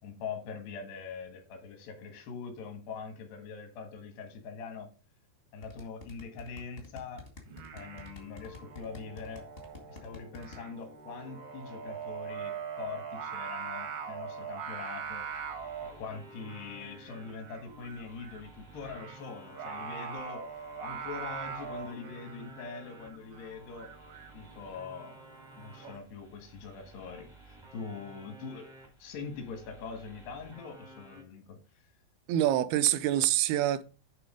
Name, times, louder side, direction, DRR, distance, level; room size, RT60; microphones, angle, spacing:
voice 1, 0.0-4.9 5.5-7.2 7.7-9.4 9.9-15.3 15.8-20.4 20.8-23.9 24.3-25.2 25.6-28.7 29.0-31.6, left 5 dB, 85° left, 3.7 m, -43 dB
sound 1, 5.6-10.6, left 3 dB, 55° left, 0.6 m, -47 dB
Singing, 7.4-25.9, right 6 dB, 65° right, 1.4 m, -43 dB
sound 2, 15.0-31.2, right 2 dB, 30° right, 0.5 m, -54 dB
voice 2, 32.3-33.8, right 12 dB, 80° right, 2.5 m, -26 dB
10.5 x 3.7 x 5.0 m
omnidirectional pair, 4.6 m